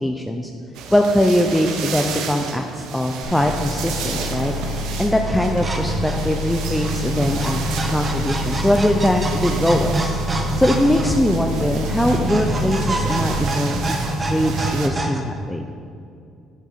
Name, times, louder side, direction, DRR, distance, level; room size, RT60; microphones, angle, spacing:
voice 1, 0.0-0.5 0.9-4.5 5.0-10.1 10.6-15.6, left 1 dB, 5° left, 3 dB, 0.5 m, -21 dB
sound 1, 0.7-14.9, right 5 dB, 80° right, 0.9 m, -32 dB
sound 2, 3.2-13.3, left 1 dB, 70° left, 2.0 m, -28 dB
sound 3, 5.3-15.2, right 1 dB, 25° right, 1.0 m, -27 dB
9.2 x 7.8 x 4.2 m, 2.5 s
cardioid pair, 105°, 0 cm